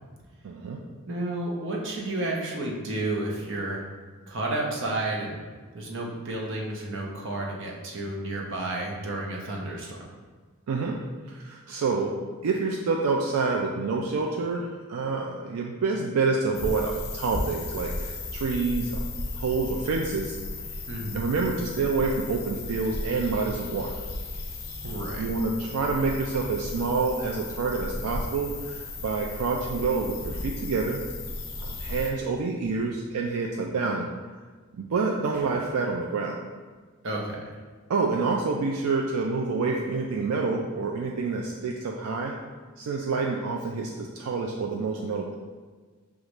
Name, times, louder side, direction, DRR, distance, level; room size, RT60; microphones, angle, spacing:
voice 1, 0.4-0.8 10.7-11.0 11.3-12.1 12.4-19.0 19.3-20.4 21.1-23.9 25.2-31.0 31.6-34.1 34.8-36.4 37.9-42.4 42.8-45.3, right 4 dB, 80° right, 0 dB, 0.4 m, -28 dB
voice 2, 1.1-3.8 4.3-5.4 5.7-10.0 20.9-21.2 24.8-25.3 37.0-37.5, right 2 dB, 60° right, -1 dB, 0.8 m, -31 dB
sound 1, 16.5-32.1, left 2 dB, 45° left, 0.9 m, -35 dB
6.4 x 2.4 x 3.0 m, 1.4 s
head